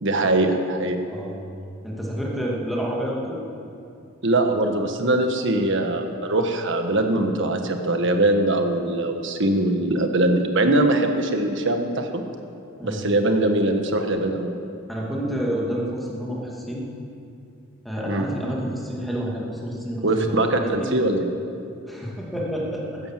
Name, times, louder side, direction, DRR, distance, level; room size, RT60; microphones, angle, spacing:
voice 1, 0.0-1.0 4.2-12.2 12.8-14.5 18.1-18.3 20.0-21.3, right 1 dB, 60° right, 5 dB, 1.5 m, -22 dB
voice 2, 1.8-3.4 12.8-13.1 14.9-16.9 17.8-20.9 21.9-23.0, equal, ahead, -4 dB, 2.5 m, -29 dB
13.5 x 13.5 x 7.6 m, 2.5 s
head